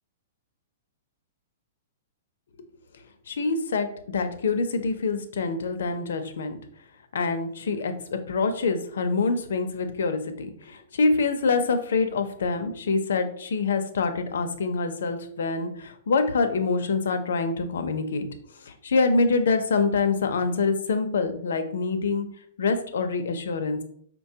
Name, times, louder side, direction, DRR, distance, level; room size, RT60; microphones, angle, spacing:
voice 1, 3.3-6.6 7.1-18.3 18.7-22.3 22.6-23.8, left 4 dB, 85° left, 8 dB, 0.5 m, -25 dB
5.0 x 2.2 x 2.7 m, 0.64 s
hypercardioid pair, 165°, 0 cm